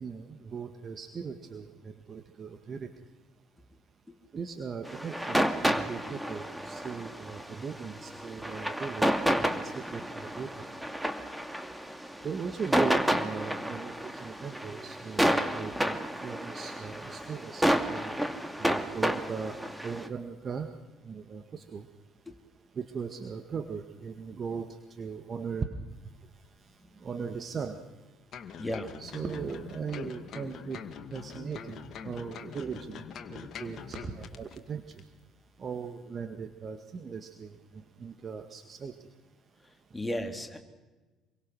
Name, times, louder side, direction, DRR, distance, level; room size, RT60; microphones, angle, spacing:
voice 1, 0.0-2.9 4.3-9.1 9.4-10.5 12.2-18.1 18.6-20.7 21.1-21.9 22.8-25.7 27.0-27.8 29.0-30.8 31.1-33.0 33.3-34.8 35.6-37.5 38.0-38.9, right 6 dB, 40° right, 7 dB, 1.9 m, -38 dB
sound 1, 4.9-20.1, equal, 5° right, 2.4 m, -30 dB
sound 2, 28.3-34.6 34.9-35.0, left 7 dB, 50° left, 2.1 m, -44 dB
voice 2, 28.6-28.9 39.6-40.6, left 1 dB, 15° left, 4 dB, 3.5 m, -35 dB
27.0 x 23.0 x 6.4 m, 1.2 s
hypercardioid pair, 55°, 0 cm